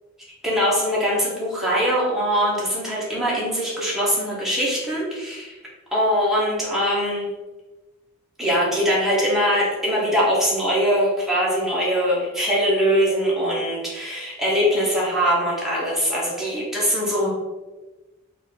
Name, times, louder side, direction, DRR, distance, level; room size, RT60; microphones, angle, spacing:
voice 1, 0.4-5.6 5.9-7.3 8.4-17.3, equal, ahead, -7 dB, 1.1 m, -22 dB
4.0 x 2.6 x 4.0 m, 1.2 s
head